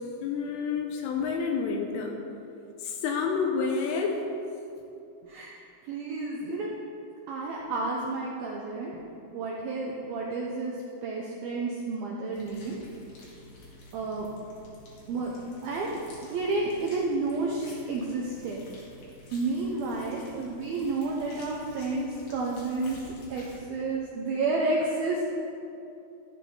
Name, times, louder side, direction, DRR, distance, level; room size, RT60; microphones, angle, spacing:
voice 1, 0.2-2.2 2.8-4.2, left 5 dB, 80° left, 2 dB, 3.3 m, -29 dB
voice 2, 5.2-5.5 5.9-6.7 7.3-9.0 9.3-10.8 11.0-12.8 13.9-14.3 15.1-15.3 15.6-18.7 19.3-23.0 23.3-25.2, right 3 dB, 90° right, -2 dB, 2.1 m, -31 dB
sound 1, 12.3-23.6, left 2 dB, 60° left, 4.5 m, -50 dB
14.0 x 14.0 x 3.9 m, 2.7 s
omnidirectional pair, 5.8 m